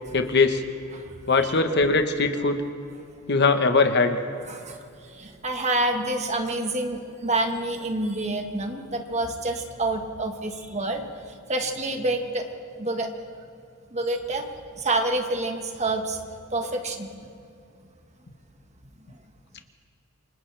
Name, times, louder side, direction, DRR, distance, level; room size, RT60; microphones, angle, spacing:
voice 1, 0.1-0.6 1.3-2.6 3.3-4.2, left 3 dB, 55° left, 6 dB, 1.3 m, -21 dB
voice 2, 4.5-4.8 5.1-11.1 11.5-12.4 12.8-13.1 13.9-14.4 14.7-16.2 16.5-17.1, right 2 dB, 35° right, 4 dB, 1.6 m, -27 dB
28.0 x 26.5 x 3.5 m, 2.6 s
head